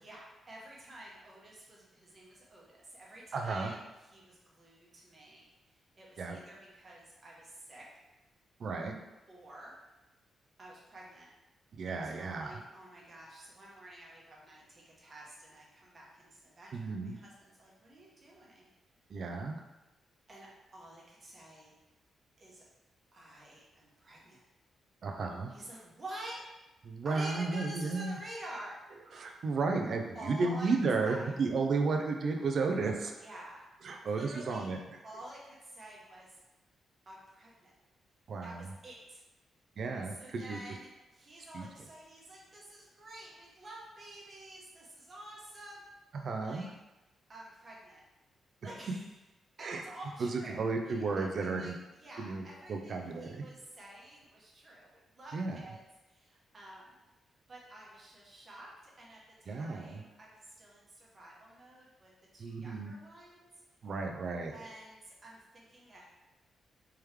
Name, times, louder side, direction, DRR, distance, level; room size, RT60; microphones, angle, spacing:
voice 1, 0.0-3.8 4.1-5.5 6.0-8.0 9.3-9.7 10.6-11.3 12.0-18.7 20.3-21.7 22.4-22.6 23.1-24.4 25.5-26.4 27.0-28.7 30.1-30.7 31.0-31.3 33.2-33.6 34.0-34.7 35.0-36.3 37.1-37.7 38.4-39.2 40.1-45.8 46.3-46.7 47.3-48.0 48.6-49.1 49.6-55.8 56.1-57.0 57.5-63.5 64.5-66.1, right 1 dB, 30° right, -4 dB, 0.9 m, -50 dB
voice 2, 3.3-3.7 6.2-6.4 8.6-8.9 11.8-12.6 16.7-17.2 19.1-19.6 25.0-25.5 26.8-28.2 29.1-33.2 33.8-35.0 38.3-38.7 39.8-40.6 41.5-41.7 46.1-46.7 49.6-49.8 50.2-51.7 52.2-52.4 52.7-53.4 55.3-55.6 59.5-60.0 62.4-62.9 63.8-64.6, right 4 dB, 50° right, 3 dB, 0.4 m, -33 dB
3.4 x 3.1 x 3.2 m, 1.0 s
wide cardioid pair, 155°, 0 cm